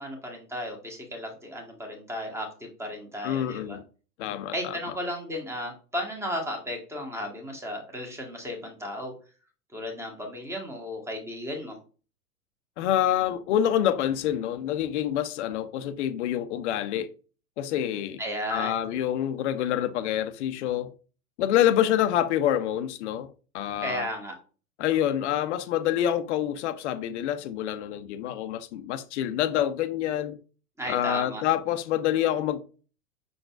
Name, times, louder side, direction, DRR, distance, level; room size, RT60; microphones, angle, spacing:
voice 1, 0.0-3.8 4.5-9.1 9.7-11.8 18.2-18.8 23.8-24.3 30.8-31.4, equal, 5° right, 1.2 m, -34 dB
voice 2, 3.2-3.8 4.2-4.8 12.8-17.1 17.6-18.2 18.5-20.9 21.4-23.3 23.5-24.1 24.8-30.4 30.9-32.6, left 11 dB, 50° left, 0.6 m, -27 dB
5.8 x 3.8 x 2.3 m
figure-of-eight pair, 100°, 47 cm